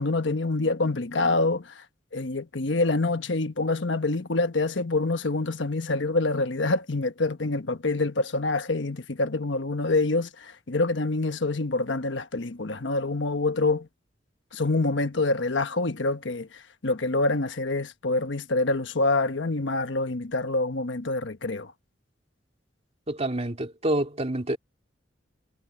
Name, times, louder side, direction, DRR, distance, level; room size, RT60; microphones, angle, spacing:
voice 1, 0.0-1.8 2.1-13.9 14.5-21.7, left 2 dB, 70° left, 1.2 m, -26 dB
voice 2, 23.1-24.6, right 1 dB, 35° right, 2.7 m, -27 dB
head